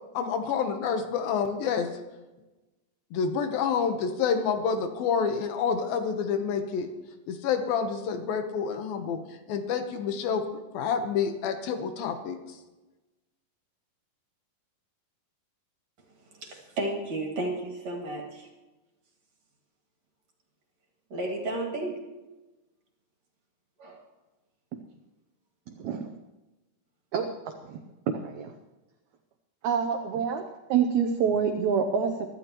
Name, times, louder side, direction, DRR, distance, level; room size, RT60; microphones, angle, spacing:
voice 1, 0.1-1.9 3.1-6.9 7.3-9.2 9.5-10.4 10.7-12.4, left 6 dB, 75° left, 7 dB, 2.8 m, -28 dB
voice 2, 16.4-18.5 21.1-22.0 23.8-24.0, right 2 dB, 50° right, 1 dB, 3.1 m, -32 dB
voice 3, 25.8-26.1 27.1-27.3 27.7-27.8 28.1-28.5 29.6-30.4 30.7-32.3, right 7 dB, 80° right, 6 dB, 1.7 m, -26 dB
23.5 x 12.5 x 3.0 m, 1.1 s
omnidirectional pair, 4.3 m